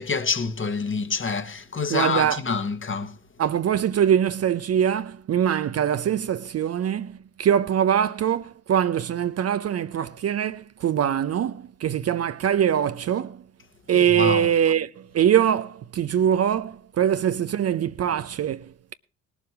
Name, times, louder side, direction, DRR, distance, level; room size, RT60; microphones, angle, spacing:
voice 1, 0.0-3.2 14.1-14.5, left 4 dB, 30° left, 1.5 m, -27 dB
voice 2, 1.9-2.4 3.4-13.4 13.9-18.9, right 9 dB, 40° right, 0.7 m, -23 dB
19.5 x 7.2 x 4.8 m
hypercardioid pair, 50°, 39 cm